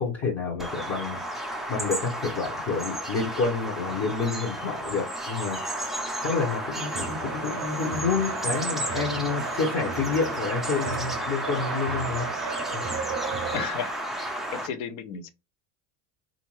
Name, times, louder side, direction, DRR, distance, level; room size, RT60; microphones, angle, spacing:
voice 1, 0.0-12.3 12.7-12.8, left 4 dB, 30° left, 1.0 m, -29 dB
Bird vocalization bird call bird song, 0.6-14.7, right 1 dB, ahead, 0.5 m, -32 dB
sound 1, 6.7-13.7, right 6 dB, 35° right, 0.7 m, -35 dB
voice 2, 13.5-15.3, left 7 dB, 60° left, 0.8 m, -34 dB
3.4 x 2.6 x 3.1 m
supercardioid pair, 90°, 49 cm